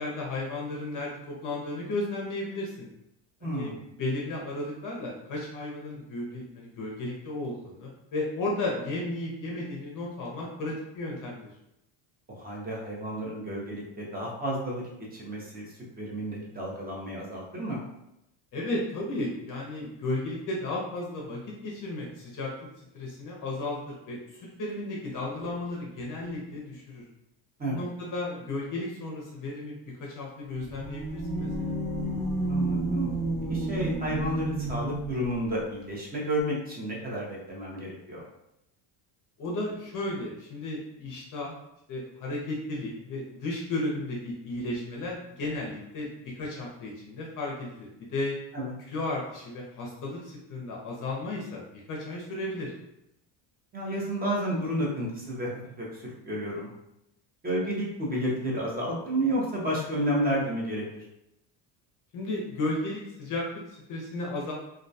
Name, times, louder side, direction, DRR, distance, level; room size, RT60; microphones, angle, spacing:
voice 1, 0.0-2.9 3.4-3.7 4.0-11.5 18.5-22.5 22.9-27.0 27.7-31.7 39.4-41.5 41.9-48.4 48.9-52.7 62.1-64.5, left 2 dB, 45° left, -3 dB, 0.6 m, -34 dB
voice 2, 3.4-3.8 12.3-14.8 15.1-15.7 16.0-17.8 27.6-27.8 32.5-33.1 33.5-38.2 48.5-48.7 53.7-56.7 57.4-61.0, equal, 20° right, -3 dB, 0.6 m, -31 dB
sound 1, 30.5-35.4, right 2 dB, ahead, 0.9 m, -30 dB
2.3 x 2.1 x 2.6 m, 0.84 s
cardioid pair, 130°, 47 cm